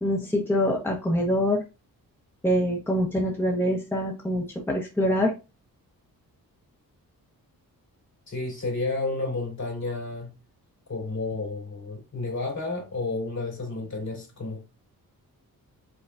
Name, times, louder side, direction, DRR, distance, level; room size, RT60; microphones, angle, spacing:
voice 1, 0.0-1.6 2.4-5.3, equal, 5° left, 1.1 m, -25 dB
voice 2, 8.3-10.3 10.9-14.7, left 3 dB, 50° left, 2.9 m, -31 dB
5.2 x 3.8 x 2.4 m
cardioid pair, 95°, 36 cm